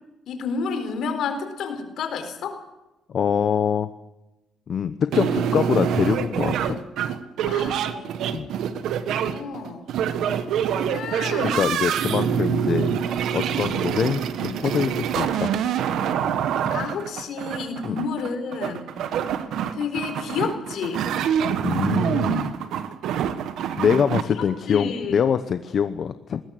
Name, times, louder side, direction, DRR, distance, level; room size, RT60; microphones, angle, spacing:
voice 1, 0.3-2.6 7.4-8.1 9.1-9.8 10.8-11.7 16.7-18.9 19.7-21.1 24.4-25.2, left 5 dB, 75° left, 7 dB, 4.1 m, -30 dB
voice 2, 3.1-3.9 4.7-6.8 8.3-8.5 11.4-12.9 13.3-15.5 17.8-18.0 21.6-22.6 23.8-26.4, left 7 dB, 55° left, 11 dB, 0.9 m, -24 dB
sound 1, 5.1-24.2, right 8 dB, 80° right, 1.4 m, -25 dB
20.5 x 18.0 x 7.7 m, 1.0 s
cardioid pair, 90°, 0 cm